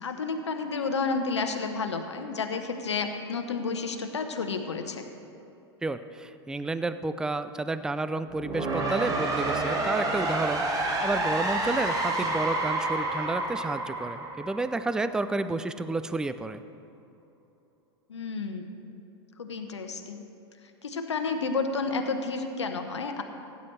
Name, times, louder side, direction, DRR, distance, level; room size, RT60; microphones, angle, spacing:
voice 1, 0.0-5.0 18.1-18.7 19.4-20.2 20.8-23.2, left 4 dB, 80° left, 5 dB, 0.9 m, -31 dB
voice 2, 5.8-16.6, right 2 dB, 5° right, 12 dB, 0.4 m, -31 dB
sound 1, 8.3-15.2, right 2 dB, 25° right, 1.6 m, -29 dB
16.5 x 9.3 x 3.3 m, 2.8 s
figure-of-eight pair, 90°, 14 cm